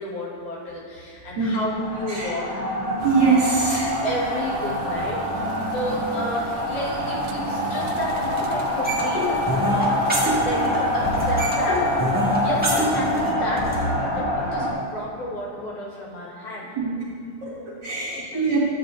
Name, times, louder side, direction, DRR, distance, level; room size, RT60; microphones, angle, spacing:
voice 1, 0.0-2.7 4.0-16.7 18.1-18.5, left 1 dB, 80° left, -6 dB, 3.4 m, -32 dB
sound 1, 1.7-14.7, left 1 dB, 35° left, 2.4 m, -26 dB
voice 2, 3.0-3.9 16.8-16.9 17.4-17.5 17.8-18.6, right 4 dB, 40° right, -8 dB, 2.2 m, -22 dB
sound 2, 3.0-13.3, right 5 dB, 85° right, 2.1 m, -38 dB
sound 3, 8.8-10.8 11.0-13.8, right 1 dB, 5° right, 0.8 m, -25 dB
13.5 x 7.7 x 2.7 m, 2.6 s
omnidirectional pair, 3.5 m